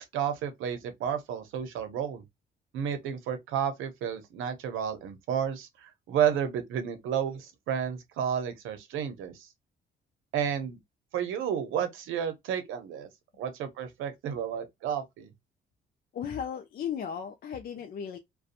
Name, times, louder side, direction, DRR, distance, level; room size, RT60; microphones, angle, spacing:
voice 1, 0.0-2.2 2.7-9.5 10.3-10.8 11.1-13.1 13.4-15.3, right 8 dB, 85° right, 0.7 m, -31 dB
voice 2, 16.1-18.2, left 8 dB, 50° left, 0.4 m, -35 dB
2.5 x 2.2 x 2.5 m
cardioid pair, 90°, 20 cm